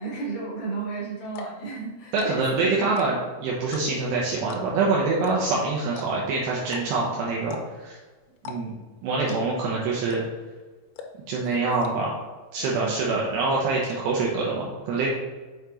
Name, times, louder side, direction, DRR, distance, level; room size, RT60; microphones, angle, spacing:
voice 1, 0.0-2.5 9.1-9.4 9.7-9.8 11.5-11.7 12.6-13.0, right 3 dB, 60° left, -5 dB, 2.0 m, -34 dB
sound 1, 0.8-0.9 1.3-1.6 2.1-2.5 2.8-3.3 3.7-4.1 4.5-4.8 5.2-5.3 5.6-5.7 6.0-6.3 6.7-6.8 7.4-7.9 8.4-8.6 8.8-8.9 9.3-9.6 10.1-10.5 11.0-11.3 11.8-11.9 12.3-12.4 12.6-13.1 13.3-13.9, left 5 dB, 85° left, 3.1 m, -39 dB
voice 2, 2.1-8.0 8.4-8.8 9.0-10.2 11.3-12.2 12.5-15.1, right 3 dB, 80° right, -4 dB, 2.9 m, -25 dB
6.8 x 5.7 x 3.1 m, 1.3 s
omnidirectional pair, 5.2 m